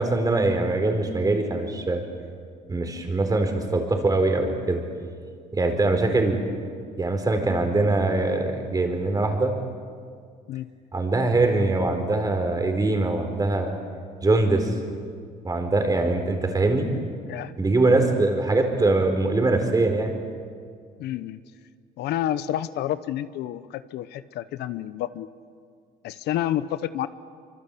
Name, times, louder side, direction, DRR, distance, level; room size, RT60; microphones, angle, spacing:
voice 1, 0.0-2.0 2.7-4.8 5.5-6.4 7.0-9.5 10.9-13.7 14.2-14.7 15.4-16.9 17.6-20.1, right 2 dB, 20° right, 5 dB, 4.3 m, -22 dB
voice 2, 21.0-21.4 22.0-25.3 26.0-27.1, left 12 dB, 80° left, 14 dB, 0.9 m, -29 dB
25.0 x 25.0 x 8.4 m, 2.1 s
cardioid pair, 110°, 17 cm